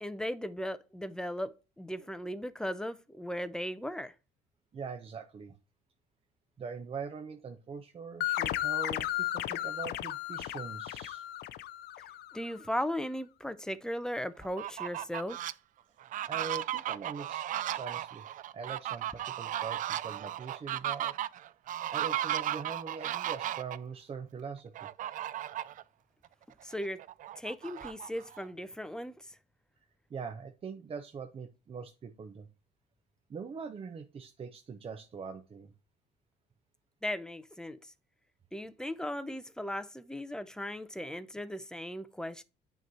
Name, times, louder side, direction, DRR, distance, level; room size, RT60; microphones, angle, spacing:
voice 1, 0.0-4.1 12.3-15.5 26.6-27.0 27.4-29.3 37.0-37.9 38.5-42.4, equal, 5° left, 0.6 m, -37 dB
voice 2, 4.7-5.6 6.6-11.2 16.3-18.2 18.5-21.1 21.9-24.9 30.1-32.5 33.3-35.7, right 5 dB, 35° right, 0.8 m, -42 dB
sound 1, 8.2-12.5, left 14 dB, 75° left, 0.6 m, -34 dB
Fowl, 14.4-15.5 16.0-23.8 24.7-25.8 26.2-26.3 26.7-28.4, right 12 dB, 50° right, 0.4 m, -35 dB
9.1 x 3.2 x 5.4 m
cardioid pair, 110°, 17 cm